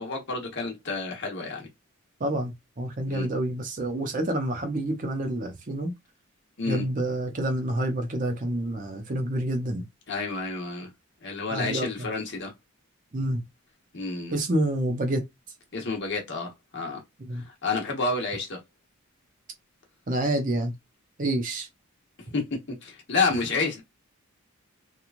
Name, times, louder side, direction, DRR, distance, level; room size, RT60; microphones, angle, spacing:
voice 1, 0.0-1.7 3.1-3.3 6.6-6.8 10.1-10.9 11.2-12.5 13.9-14.3 15.7-17.0 17.3-18.6 22.3-22.4 22.8-23.8, left 3 dB, 55° left, 1.0 m, -29 dB
voice 2, 2.2-5.9 6.7-9.8 11.5-12.1 13.1-13.4 14.3-15.2 17.2-17.4 20.1-20.7 21.2-21.7, right 1 dB, 40° right, 0.6 m, -28 dB
3.0 x 2.3 x 2.4 m
head